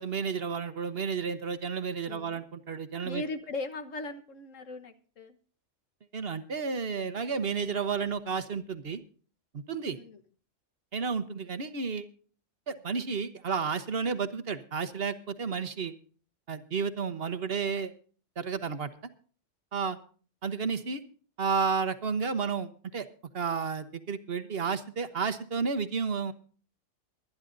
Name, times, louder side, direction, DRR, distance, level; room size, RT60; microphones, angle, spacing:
voice 1, 0.0-3.2 6.1-9.0 9.5-10.0 10.9-12.1 12.7-15.9 16.5-17.9 18.4-18.9 19.7-20.0 20.4-21.0 21.4-23.0 23.3-26.3, right 5 dB, 50° right, 12 dB, 1.2 m, -31 dB
voice 2, 2.1-2.4 3.0-5.4 9.9-10.2, left 2 dB, 75° left, 8 dB, 1.6 m, -39 dB
23.5 x 10.5 x 2.6 m, 0.41 s
omnidirectional pair, 1.3 m